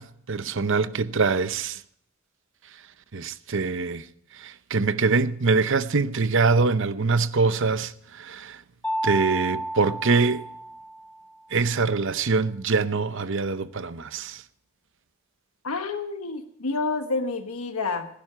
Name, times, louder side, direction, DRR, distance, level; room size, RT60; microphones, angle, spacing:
voice 1, 0.0-1.8 3.1-4.0 4.4-8.6 9.0-10.4 11.5-14.4, right 4 dB, 60° right, 0.7 m, -24 dB
Mallet percussion, 8.8-11.3, right 1 dB, 5° left, 1.0 m, -31 dB
voice 2, 15.6-18.1, left 3 dB, 85° left, 1.3 m, -29 dB
17.0 x 10.5 x 5.7 m
head